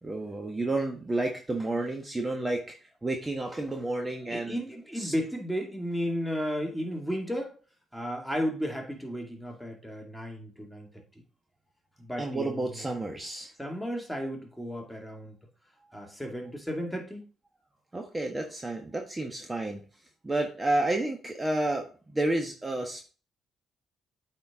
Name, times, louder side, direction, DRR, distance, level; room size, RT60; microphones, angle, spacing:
voice 1, 0.0-2.7 3.0-4.6 4.9-5.1 12.2-13.5 17.9-19.8 20.2-23.1, right 2 dB, 20° right, 1.3 m, -30 dB
voice 2, 4.3-7.6 7.9-11.0 12.0-12.9 13.6-15.4 15.9-17.2, equal, ahead, 2.2 m, -34 dB
8.5 x 4.4 x 3.6 m
supercardioid pair, 60°, 0 cm